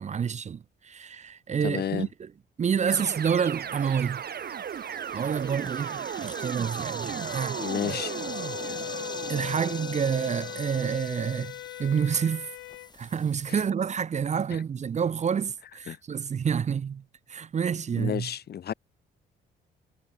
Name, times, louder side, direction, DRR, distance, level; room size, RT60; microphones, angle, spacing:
voice 1, 0.0-2.3 2.6-4.2 5.1-7.6 9.3-11.5 11.8-12.5 13.0-17.0 17.3-18.3, right 7 dB, 35° right, 0.6 m, -28 dB
voice 2, 1.6-2.1 7.6-8.1 13.5-13.6 14.5-14.6 15.9-16.0 18.0-18.7, left 9 dB, 55° left, 1.0 m, -31 dB
sound 1, 2.7-13.7, left 3 dB, 20° left, 2.3 m, -44 dB
sound 2, 2.9-11.0, right 8 dB, 50° right, 1.8 m, -36 dB
Wind instrument woodwind instrument, 7.2-12.9, left 14 dB, 80° left, 1.1 m, -40 dB
cardioid pair, 90°, 20 cm